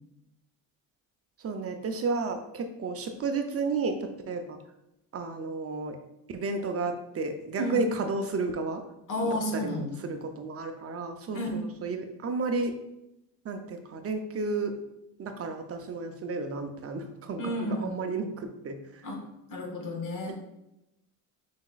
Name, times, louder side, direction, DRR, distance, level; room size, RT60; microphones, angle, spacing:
voice 1, 1.4-4.6 5.1-6.0 6.3-8.8 9.5-12.7 13.4-14.7 15.2-19.1 20.3-20.4, right 3 dB, 35° right, 5 dB, 0.6 m, -32 dB
voice 2, 9.1-9.9 11.3-11.8 17.4-18.0 19.0-19.2 19.5-20.3, left 1 dB, 50° left, 1 dB, 1.5 m, -31 dB
5.9 x 3.6 x 2.4 m, 0.87 s
cardioid pair, 105°, 41 cm